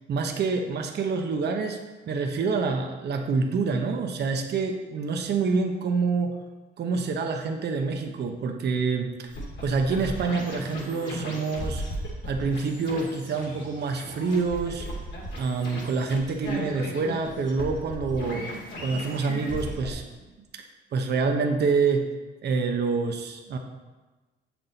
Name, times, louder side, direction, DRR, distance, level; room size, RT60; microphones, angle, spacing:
voice 1, 0.1-1.8 2.1-6.3 6.8-9.3 9.6-11.8 12.3-14.9 15.4-20.0 20.9-22.1 22.4-23.6, right 4 dB, 55° right, 3 dB, 0.8 m, -27 dB
sound 1, 9.3-19.9, equal, 65° left, 2.3 m, -36 dB
7.3 x 6.0 x 4.0 m, 1.2 s
cardioid pair, 90°, 20 cm